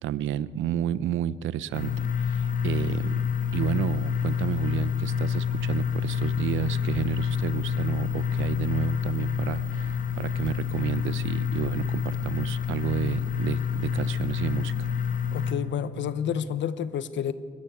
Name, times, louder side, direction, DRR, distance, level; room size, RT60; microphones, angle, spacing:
voice 1, 0.0-3.2 3.5-14.9, right 11 dB, 80° right, 17 dB, 0.7 m, -31 dB
sound 1, 1.7-15.5, left 7 dB, 40° left, 1.7 m, -28 dB
voice 2, 15.3-17.3, left 9 dB, 65° left, 14 dB, 0.9 m, -29 dB
22.0 x 13.5 x 9.2 m, 2.3 s
cardioid pair, 90°, 20 cm